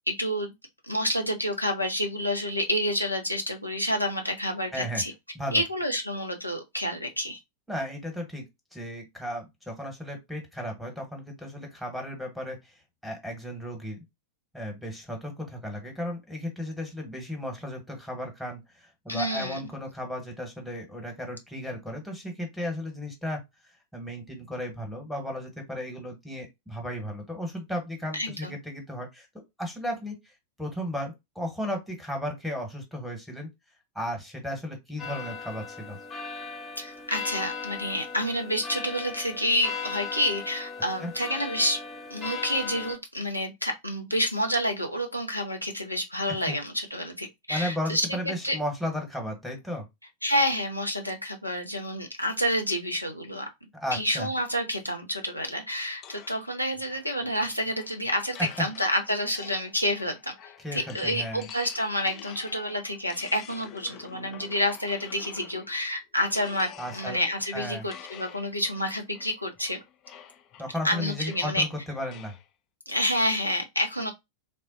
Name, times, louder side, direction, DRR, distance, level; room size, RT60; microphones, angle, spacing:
voice 1, 0.1-0.5 0.8-5.1 5.5-7.4 19.1-19.7 28.1-28.5 36.8-41.8 42.1-48.6 50.2-53.5 53.9-60.3 60.7-69.8 70.8-71.6 72.9-74.1, equal, 90° left, 0.6 m, -29 dB
voice 2, 4.7-5.0 5.3-5.6 7.7-8.4 8.7-12.6 13.0-14.0 14.5-23.4 23.9-29.3 29.6-30.3 30.6-33.5 33.9-36.0 41.0-41.1 46.5-46.6 47.5-49.8 53.8-54.3 58.6-58.7 60.6-61.4 66.8-67.2 67.5-67.8 70.6-72.3, equal, ahead, 1.1 m, -34 dB
sound 1, 35.0-43.0, left 5 dB, 20° left, 0.8 m, -37 dB
sound 2, 56.0-65.8 66.2-72.5, left 9 dB, 35° left, 0.4 m, -48 dB
3.3 x 2.1 x 2.6 m
figure-of-eight pair, 90°, 0 cm